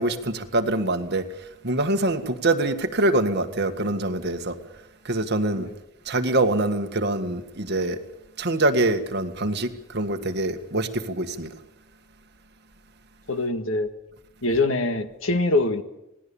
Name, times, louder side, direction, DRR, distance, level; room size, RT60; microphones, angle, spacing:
voice 1, 0.0-4.6 5.0-5.7 6.1-8.0 8.4-11.5, right 2 dB, 55° right, 1.8 m, -24 dB
voice 2, 13.3-13.9 14.4-15.8, left 2 dB, 70° left, 1.8 m, -23 dB
26.5 x 18.5 x 7.1 m
head